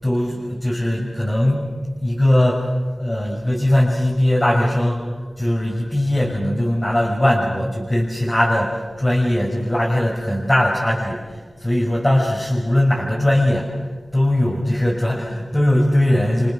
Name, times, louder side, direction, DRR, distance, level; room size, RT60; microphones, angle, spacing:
voice 1, 0.0-1.7 2.0-2.7 3.0-13.8 14.1-16.5, left 1 dB, 15° left, -4 dB, 6.4 m, -20 dB
29.0 x 27.0 x 6.6 m, 1.4 s
wide cardioid pair, 90°, 0 cm